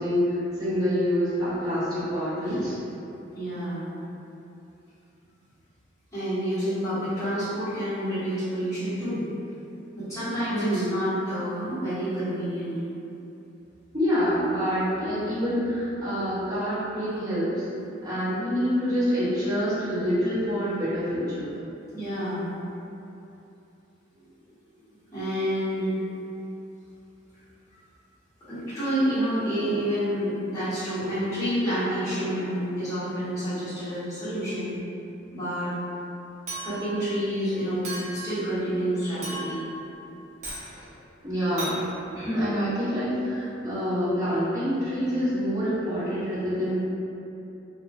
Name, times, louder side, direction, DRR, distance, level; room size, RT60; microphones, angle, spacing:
voice 1, 0.0-2.7 10.5-10.9 13.9-17.6 18.0-21.5 40.7-40.9 41.2-41.7 42.1-46.8, equal, 20° right, -13 dB, 1.0 m, -26 dB
voice 2, 2.4-2.8 3.3-3.8 6.1-9.2 9.9-12.8 17.1-17.2 17.8-17.9 21.9-22.5 25.1-26.1 28.5-34.7 35.3-35.7 36.6-39.6, equal, 15° left, -15 dB, 1.2 m, -29 dB
Chink clink, 36.5-37.0 37.8-38.3 39.2-39.7 40.4-40.7 41.6-41.8, right 2 dB, 40° right, 0.6 m, -35 dB
2.8 x 2.3 x 2.5 m, 2.8 s
head